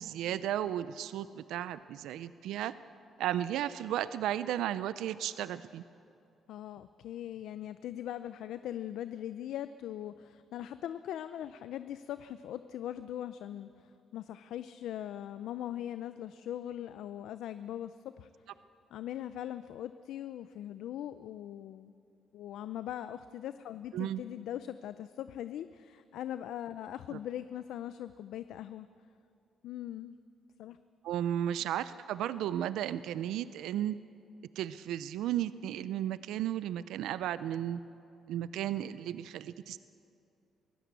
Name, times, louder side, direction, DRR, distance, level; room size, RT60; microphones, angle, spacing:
voice 1, 0.0-2.7 3.2-5.8 23.9-24.2 31.0-34.0 34.6-37.8 38.3-39.8, right 11 dB, 85° right, 15 dB, 0.5 m, -34 dB
voice 2, 6.5-18.3 18.9-21.9 22.3-28.9 29.6-30.2 30.6-30.8, left 11 dB, 80° left, 12 dB, 0.5 m, -41 dB
23.0 x 16.0 x 8.3 m, 2.6 s
cardioid pair, 90°, 0 cm